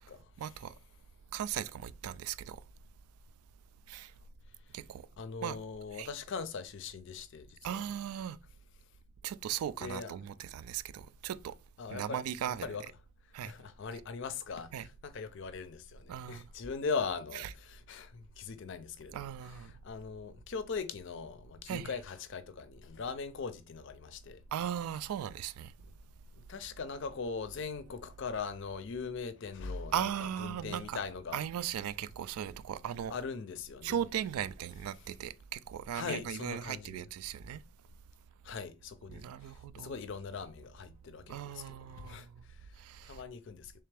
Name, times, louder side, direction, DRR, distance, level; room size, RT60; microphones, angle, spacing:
voice 1, 0.4-0.7 1.3-2.6 3.9-4.1 4.7-5.0 5.4-5.6 5.9-6.1 7.6-8.4 9.2-11.5 11.9-12.7 13.3-13.5 14.7-14.9 16.1-16.4 17.3-17.5 19.1-19.7 21.7-22.0 24.5-25.7 29.9-31.0 31.3-33.1 33.8-37.6 39.1-40.0 41.3-42.2 42.8-43.2, right 9 dB, 80° right, 0.3 m, -37 dB
voice 2, 5.2-7.8 9.8-10.1 11.8-12.2 12.6-12.8 13.5-19.2 19.7-24.4 26.5-31.4 33.1-34.0 35.9-37.0 38.4-42.3 43.1-43.7, left 5 dB, 55° left, 0.4 m, -40 dB
3.4 x 3.3 x 3.3 m
head